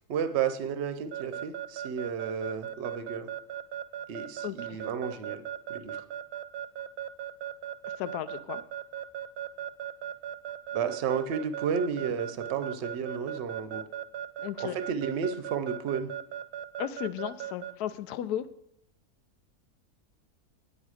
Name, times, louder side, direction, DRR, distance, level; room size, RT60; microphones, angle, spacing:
voice 1, 0.1-3.3 4.1-5.4 5.7-6.0 10.7-13.9 14.6-16.1, right 7 dB, 55° right, 10 dB, 0.8 m, -32 dB
Keyboard (musical) / Alarm, 1.1-17.7, right 11 dB, 85° right, 1.1 m, -37 dB
voice 2, 8.0-8.6 14.4-14.7 16.8-18.5, left 11 dB, 85° left, 14 dB, 1.1 m, -34 dB
9.3 x 8.4 x 4.8 m, 0.77 s
omnidirectional pair, 1.6 m